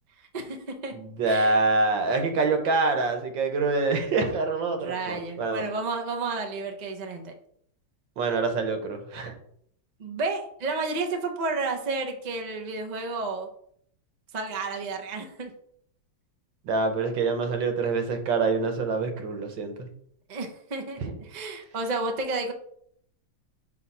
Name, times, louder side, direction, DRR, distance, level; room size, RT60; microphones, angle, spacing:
voice 1, 0.3-1.0 1.2-1.6 4.8-7.3 10.0-13.5 14.3-15.5 20.3-22.5, right 3 dB, 55° right, 3 dB, 0.4 m, -31 dB
voice 2, 0.9-5.6 8.2-9.3 16.7-19.7, right 3 dB, 75° right, 6 dB, 1.7 m, -25 dB
4.8 x 4.0 x 5.5 m, 0.68 s
omnidirectional pair, 2.1 m